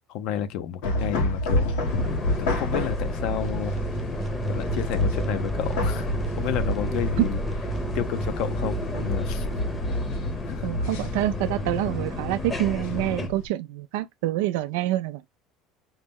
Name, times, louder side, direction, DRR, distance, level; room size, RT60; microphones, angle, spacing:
voice 1, 0.1-1.8 2.4-3.7 4.5-7.4 7.9-9.5 9.9-10.0 10.4-10.7, left 10 dB, 60° left, 0.7 m, -31 dB
sound 1, 0.8-13.5, left 1 dB, 80° left, 1.4 m, -30 dB
sound 2, 1.9-13.3, left 2 dB, 15° left, 0.8 m, -33 dB
sound 3, 3.3-9.9, right 5 dB, 15° right, 0.5 m, -33 dB
voice 2, 10.6-15.3, right 15 dB, 85° right, 0.3 m, -26 dB
5.5 x 2.1 x 3.6 m
cardioid pair, 145°, 0 cm